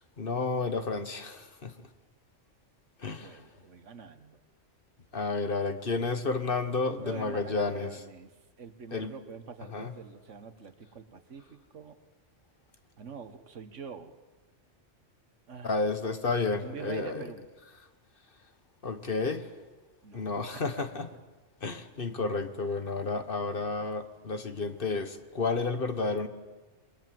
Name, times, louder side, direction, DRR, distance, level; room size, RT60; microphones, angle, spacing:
voice 1, 0.2-1.7 3.0-3.4 5.1-7.9 8.9-9.1 9.7-9.9 15.6-17.2 18.8-19.5 20.1-21.1 21.6-26.3, left 3 dB, 50° left, 1.5 m, -31 dB
voice 2, 3.2-4.4 6.8-8.3 8.6-12.0 13.0-14.1 15.5-15.8 16.6-17.5 20.0-20.2 20.5-20.9, right 6 dB, 85° right, 1.7 m, -45 dB
28.0 x 21.0 x 7.8 m
omnidirectional pair, 1.2 m